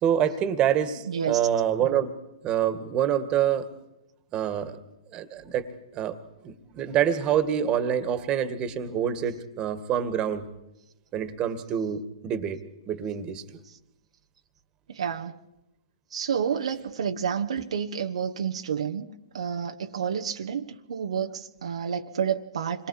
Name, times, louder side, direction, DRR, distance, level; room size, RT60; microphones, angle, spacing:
voice 1, 0.0-2.1 2.4-3.7 4.3-4.8 5.1-6.2 6.4-10.4 11.1-12.6 12.9-13.4, right 9 dB, 25° right, 11 dB, 2.1 m, -26 dB
voice 2, 1.0-1.4 13.6-13.8 14.9-15.4 16.1-19.1 19.3-22.9, right 7 dB, 70° right, 4 dB, 1.3 m, -30 dB
27.5 x 22.0 x 5.0 m, 0.93 s
figure-of-eight pair, 120°, 3 cm